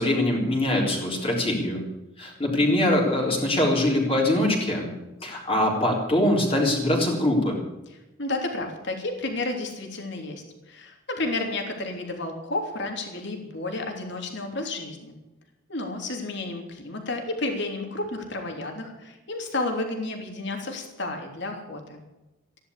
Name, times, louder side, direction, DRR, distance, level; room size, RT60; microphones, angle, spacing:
voice 1, 0.0-1.9 2.2-4.9 5.2-7.6, left 1 dB, 25° left, -1 dB, 3.9 m, -23 dB
voice 2, 8.2-15.2 15.7-22.0, left 2 dB, 55° left, 3 dB, 3.2 m, -31 dB
15.0 x 11.0 x 8.4 m, 1.0 s
head